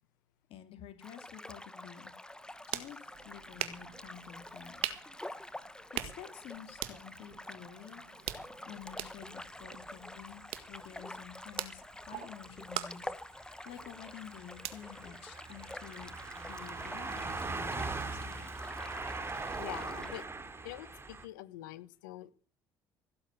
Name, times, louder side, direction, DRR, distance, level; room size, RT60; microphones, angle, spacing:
voice 1, 0.5-2.1 2.7-4.9 6.0-8.0 8.7-18.4, left 10 dB, 65° left, 9 dB, 2.3 m, -50 dB
sound 1, 1.0-20.3, left 1 dB, 10° left, 1.0 m, -48 dB
sound 2, 2.3-16.0, right 14 dB, 70° right, 1.8 m, -44 dB
sound 3, 9.2-9.3 10.8-10.9 11.6-11.7 12.0-12.2 12.5-21.3, right 3 dB, 25° right, 3.3 m, -41 dB
voice 2, 19.6-20.3 20.6-22.3, left 15 dB, 90° left, 17 dB, 1.1 m, -45 dB
17.0 x 8.0 x 7.9 m, 0.42 s
hypercardioid pair, 70°, 10 cm